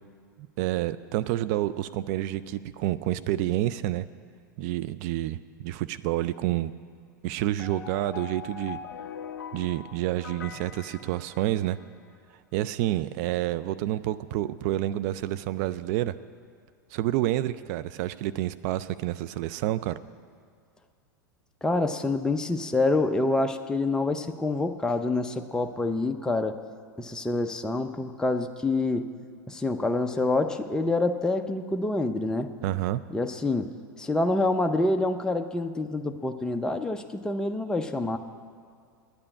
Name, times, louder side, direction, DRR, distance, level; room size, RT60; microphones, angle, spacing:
voice 1, 0.4-4.1 4.6-5.4 5.6-6.7 7.2-8.8 9.5-11.8 12.5-16.1 16.9-20.0 32.6-33.0, right 14 dB, 55° right, 14 dB, 0.3 m, -28 dB
sound 1, 7.6-11.9, left 7 dB, 80° left, 0.6 m, -42 dB
voice 2, 21.6-26.6 27.0-29.1 29.5-32.5 33.1-33.7 34.0-38.2, left 2 dB, 5° left, 6 dB, 0.5 m, -27 dB
9.7 x 8.8 x 8.5 m, 2.3 s
hypercardioid pair, 90°, 11 cm